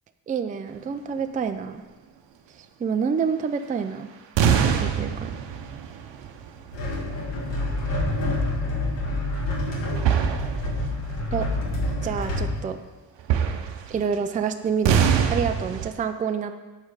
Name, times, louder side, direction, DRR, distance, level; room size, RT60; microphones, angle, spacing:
voice 1, 0.3-1.8 2.8-4.1 4.4-5.3 11.3-11.5 12.0-12.8 13.9-16.6, right 6 dB, 20° right, 8 dB, 0.3 m, -28 dB
sound 1, 4.4-8.1 8.4-8.7 10.0-11.0 11.4-11.5 13.2-14.3 14.8-15.9, right 7 dB, 80° right, 0.8 m, -24 dB
sound 2, 6.7-12.5, left 1 dB, 80° left, 2.0 m, -27 dB
7.3 x 5.5 x 4.8 m, 1.2 s
cardioid pair, 115°, 44 cm